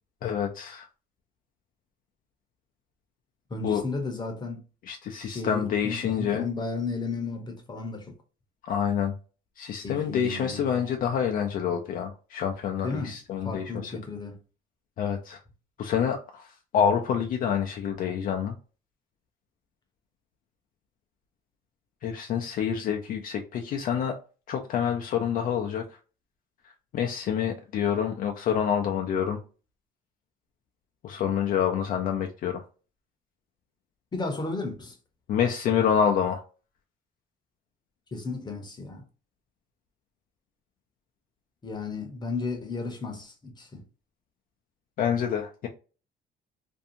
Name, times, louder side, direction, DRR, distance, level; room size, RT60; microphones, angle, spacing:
voice 1, 0.2-0.8 3.6-3.8 4.9-6.4 8.7-9.1 9.6-13.9 15.0-15.4 15.8-16.4 16.7-18.5 22.0-24.1 24.5-25.8 26.9-29.4 31.0-32.6 35.3-36.4 45.0-45.7, left 8 dB, 55° left, 0.4 m, -27 dB
voice 2, 3.5-4.6 5.2-8.1 9.8-10.8 12.8-13.1 13.4-14.4 34.1-34.9 38.1-39.0 41.6-43.8, left 3 dB, 25° left, 0.8 m, -34 dB
2.6 x 2.3 x 2.7 m
cardioid pair, 110°, 17 cm